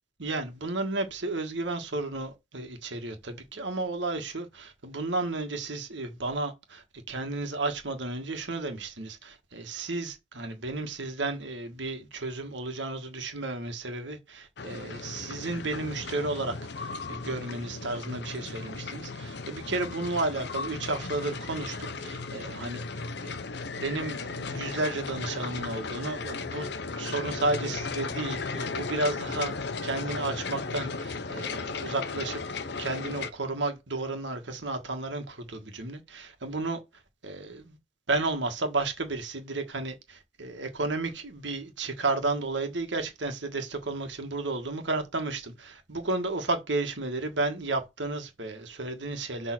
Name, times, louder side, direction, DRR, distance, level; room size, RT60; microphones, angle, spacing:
voice 1, 0.2-23.3 23.8-26.7 27.0-32.4 32.8-36.8 37.2-37.8 38.1-49.5, right 2 dB, 70° right, 1.6 m, -32 dB
sound 1, 14.6-33.3, left 4 dB, 60° left, 0.8 m, -36 dB
6.4 x 3.6 x 6.0 m
head